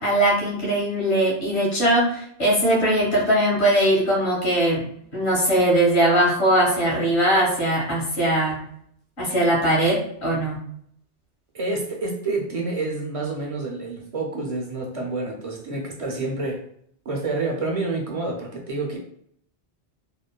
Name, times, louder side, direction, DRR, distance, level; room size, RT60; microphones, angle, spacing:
voice 1, 0.0-4.8 5.1-8.6 9.2-10.6, right 1 dB, 70° left, -4 dB, 1.5 m, -20 dB
voice 2, 11.5-16.6 17.1-19.0, right 3 dB, 45° right, 0 dB, 0.5 m, -28 dB
3.2 x 2.1 x 2.2 m, 0.66 s
omnidirectional pair, 1.1 m